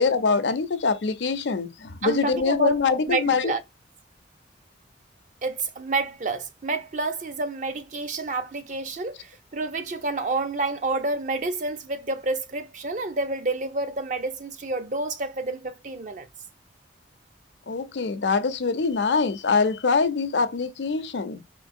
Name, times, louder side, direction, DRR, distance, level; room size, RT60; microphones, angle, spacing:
voice 1, 0.0-3.5 17.7-21.4, left 4 dB, 75° left, 0.5 m, -24 dB
voice 2, 2.0-2.8 3.1-3.6 5.4-16.3, right 3 dB, 40° right, 0.5 m, -29 dB
4.4 x 3.1 x 2.6 m
head